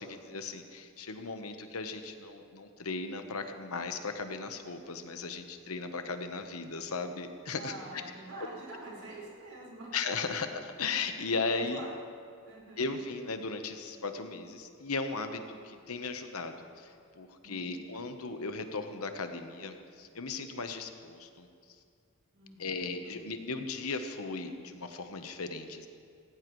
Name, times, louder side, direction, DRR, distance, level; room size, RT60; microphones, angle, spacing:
voice 1, 0.0-8.0 9.9-11.8 12.8-21.5 22.6-25.9, left 4 dB, 80° left, 7 dB, 1.1 m, -37 dB
voice 2, 7.5-9.9 11.5-11.9 12.5-12.8 17.4-17.6 22.3-23.3, right 2 dB, 70° right, -5 dB, 4.5 m, -46 dB
18.0 x 17.0 x 3.2 m, 2.3 s
head